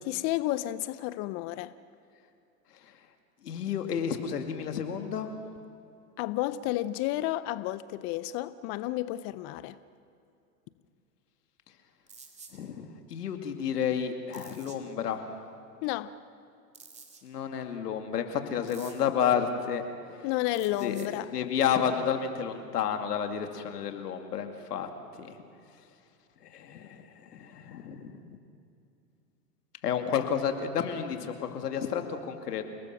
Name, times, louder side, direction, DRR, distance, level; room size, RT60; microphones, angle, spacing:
voice 1, 0.0-1.7 6.2-9.8 15.8-16.2 20.2-21.3, left 15 dB, 30° left, 0.4 m, -31 dB
voice 2, 3.4-5.3 12.5-15.2 17.2-19.8 20.1-20.3 20.8-24.9 25.2-25.4 26.4-27.0 27.3-28.4 29.8-32.7, left 8 dB, 75° left, 2.6 m, -31 dB
sound 1, 12.1-12.6 14.3-14.8 16.7-17.2 18.7-19.1 20.5-21.1, right 4 dB, 15° right, 2.4 m, -50 dB
29.0 x 19.0 x 6.0 m
hypercardioid pair, 110°, 48 cm